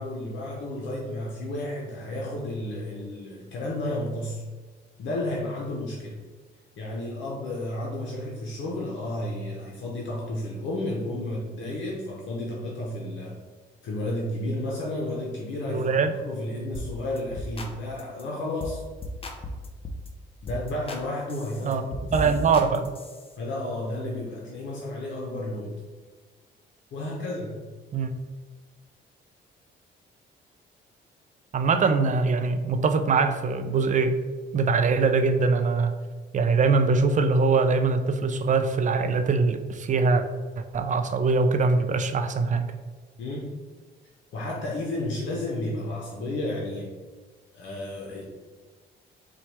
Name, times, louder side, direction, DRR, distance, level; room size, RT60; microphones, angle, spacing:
voice 1, 0.0-4.4 5.0-6.2 6.8-13.4 13.8-16.0 16.3-18.8 20.4-21.9 22.2-22.5 23.4-25.8 26.9-27.7 43.2-43.6 44.3-46.9 47.5-48.2, left 1 dB, 70° left, -2 dB, 0.7 m, -32 dB
voice 2, 15.7-16.1 21.6-21.8 22.1-22.9 27.9-28.1 31.5-34.2 34.5-35.9 36.3-40.2 40.6-42.7, right 4 dB, 40° right, 8 dB, 0.4 m, -23 dB
sound 1, 16.7-16.9 17.2-17.7 18.0-18.2 18.6-18.8 19.0-20.1 20.5-21.0 21.3-23.3, left 1 dB, 30° left, 0.6 m, -36 dB
4.2 x 2.4 x 4.6 m, 1.4 s
cardioid pair, 90°, 20 cm